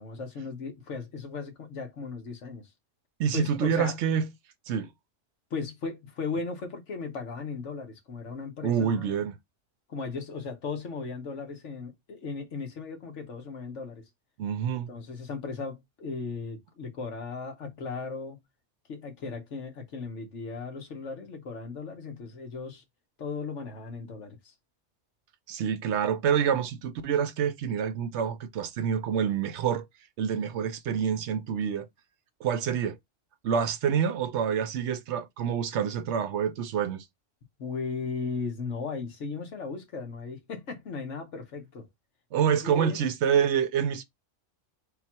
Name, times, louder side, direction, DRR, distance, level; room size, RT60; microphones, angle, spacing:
voice 1, 0.0-2.7 3.3-4.0 5.5-9.2 9.9-14.0 14.9-18.4 18.9-22.8 23.2-24.5 37.6-41.9 42.6-43.0, left 4 dB, 70° left, 1.4 m, -36 dB
voice 2, 3.2-4.3 4.7-4.9 8.6-9.4 14.4-14.9 25.5-29.9 30.2-31.9 32.4-33.0 33.4-37.1 42.3-44.0, right 8 dB, 70° right, 0.8 m, -27 dB
4.0 x 2.3 x 4.2 m
omnidirectional pair, 1.3 m